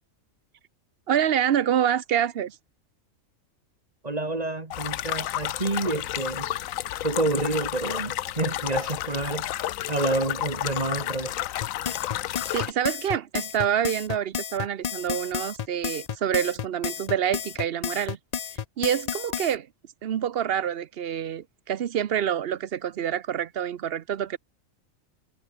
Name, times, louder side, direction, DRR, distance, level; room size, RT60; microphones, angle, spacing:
voice 1, 1.1-2.6 12.5-18.2 18.8-19.7 20.0-24.4, right 9 dB, 55° right, 0.8 m, -27 dB
voice 2, 4.0-6.5 7.0-9.5 9.9-11.4, right 2 dB, 30° right, 1.8 m, -28 dB
sound 1, 4.7-12.7, left 13 dB, 80° left, 1.0 m, -31 dB
sound 2, 11.6-19.5, left 8 dB, 60° left, 0.4 m, -32 dB
omnidirectional pair, 1.4 m